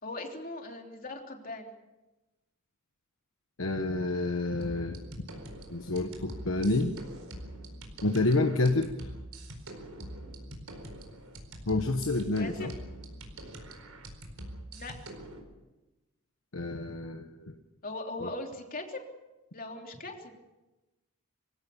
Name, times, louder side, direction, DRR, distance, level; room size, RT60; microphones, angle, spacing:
voice 1, 0.0-1.7 12.4-12.7 14.7-14.9 17.8-19.0 19.5-20.3, left 2 dB, 40° left, 2 dB, 3.2 m, -39 dB
voice 2, 3.6-5.0 5.7-6.9 8.0-8.9 11.7-12.7 16.5-17.5 18.2-18.3, left 2 dB, 65° left, 5 dB, 1.2 m, -28 dB
sound 1, 4.6-15.4, right 1 dB, 75° right, 4.5 m, -44 dB
25.0 x 17.0 x 7.1 m, 1.1 s
head